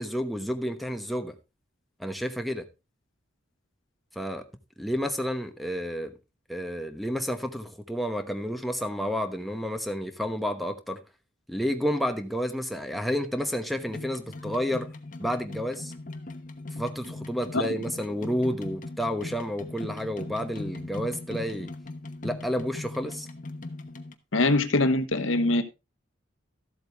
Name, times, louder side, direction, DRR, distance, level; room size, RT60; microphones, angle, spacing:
voice 1, 0.0-1.3 2.0-2.7 4.1-4.4 4.8-6.1 6.5-11.0 11.5-14.9 15.2-15.9 16.8-21.7 22.2-23.3, equal, ahead, 1.0 m, -30 dB
sound 1, 13.8-24.1, left 2 dB, 40° left, 1.1 m, -39 dB
voice 2, 24.3-25.6, left 2 dB, 90° left, 1.2 m, -23 dB
13.5 x 7.8 x 3.5 m
head